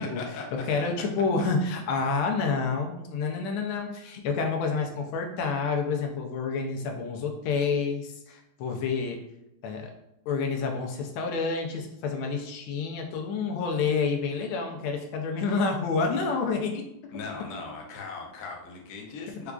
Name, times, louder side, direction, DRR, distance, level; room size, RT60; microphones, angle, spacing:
voice 1, 0.0-0.7 17.1-19.5, left 4 dB, 65° left, 0 dB, 1.0 m, -39 dB
voice 2, 0.7-9.2 9.6-9.9 10.3-16.8, left 4 dB, 85° left, 2 dB, 1.4 m, -28 dB
4.7 x 2.4 x 2.3 m, 0.84 s
omnidirectional pair, 2.2 m